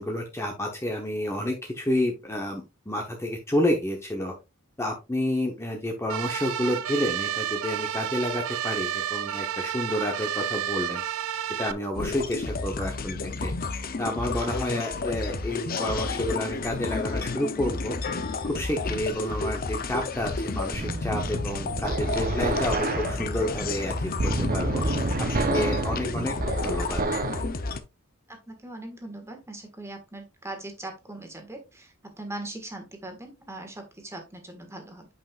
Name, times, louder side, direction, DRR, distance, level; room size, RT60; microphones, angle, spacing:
voice 1, 0.0-4.3 4.8-11.0 11.6-13.5 14.0-18.0 18.4-23.9 24.2-24.8 25.2-26.3 26.6-27.0, left 1 dB, 15° left, 1 dB, 0.9 m, -29 dB
sound 1, 6.1-11.7, right 10 dB, 75° right, 0.4 m, -31 dB
sound 2, 11.9-27.8, left 3 dB, 45° left, 0.7 m, -31 dB
sound 3, 20.7-27.5, right 2 dB, 45° right, 0.9 m, -29 dB
voice 2, 28.3-35.1, right 2 dB, 15° right, 4 dB, 1.7 m, -40 dB
8.6 x 5.5 x 2.4 m, 0.25 s
head